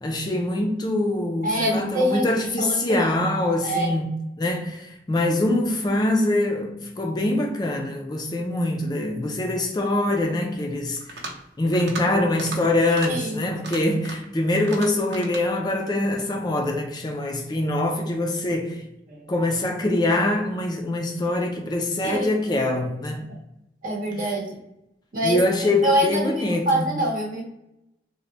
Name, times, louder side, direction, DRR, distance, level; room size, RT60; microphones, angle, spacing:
voice 1, 0.0-11.2 11.6-18.8 19.3-23.3 24.2-24.3 25.2-26.9, left 1 dB, 25° left, 0.4 m, -24 dB
voice 2, 1.4-2.2 2.6-3.1 3.6-3.9 13.1-13.4 19.1-19.3 22.0-22.3 23.3-23.4 23.8-24.5 25.1-25.4 25.8-27.4, right 1 dB, 50° right, 0.9 m, -25 dB
sound 1, 11.0-11.4 11.7-12.0 12.3-12.6 12.9-13.1 13.5-14.3 14.6-15.4, right 2 dB, 80° right, 0.8 m, -36 dB
3.8 x 2.1 x 3.2 m
head